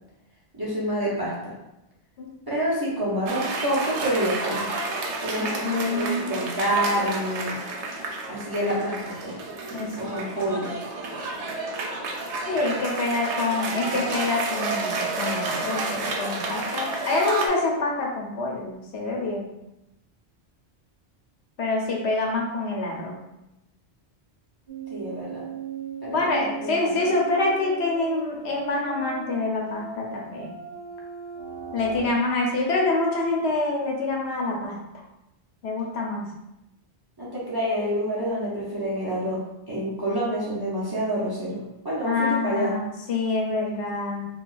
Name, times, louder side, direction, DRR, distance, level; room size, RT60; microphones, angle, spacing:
voice 1, 0.6-1.5 2.5-4.7 5.2-7.6 8.3-9.3 10.0-10.8 24.9-25.4 26.0-26.3 26.6-26.9 37.2-42.7, right 1 dB, 25° right, -8 dB, 0.8 m, -27 dB
Cheering / Applause, 3.3-17.5, right 3 dB, 90° right, 0.9 m, -30 dB
voice 2, 5.4-6.3 9.7-10.5 12.5-19.4 21.6-23.2 26.1-30.5 31.7-34.8 35.6-36.2 42.0-42.8 43.1-44.3, left 3 dB, 75° left, -1 dB, 0.9 m, -26 dB
sound 1, 24.7-32.1, right 4 dB, 60° right, 1.1 m, -38 dB
3.8 x 2.3 x 2.5 m, 0.88 s
omnidirectional pair, 1.1 m